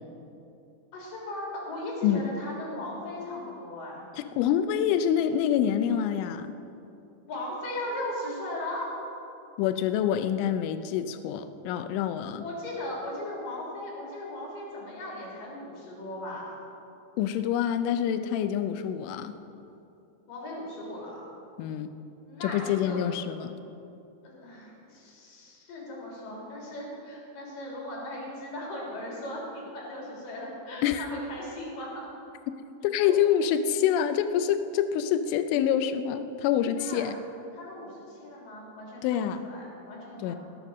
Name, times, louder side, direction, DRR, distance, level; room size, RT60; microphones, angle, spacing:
voice 1, 0.9-4.0 7.3-8.9 12.4-16.6 20.3-21.3 22.3-23.0 24.2-32.1 33.1-33.4 36.8-37.0 37.5-40.4, left 1 dB, 50° left, -4 dB, 4.5 m, -38 dB
voice 2, 4.2-6.5 9.6-12.4 17.2-19.4 21.6-21.9 22.4-23.6 30.8-31.1 32.8-37.2 39.0-39.4 40.2-40.4, left 9 dB, 85° left, 10 dB, 3.1 m, -26 dB
18.5 x 9.0 x 6.1 m, 2.8 s
omnidirectional pair, 5.5 m